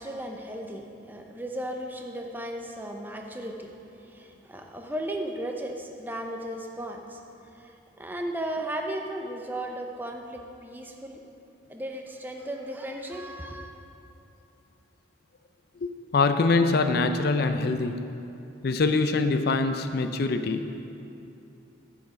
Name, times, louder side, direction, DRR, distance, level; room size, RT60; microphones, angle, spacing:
voice 1, 0.0-3.7 4.0-7.2 7.5-11.2 11.7-13.7, right 1 dB, 10° right, 2 dB, 0.6 m, -35 dB
voice 2, 15.8-18.0 18.6-20.8, left 3 dB, 50° left, 8 dB, 0.4 m, -24 dB
9.6 x 7.0 x 5.1 m, 2.7 s
head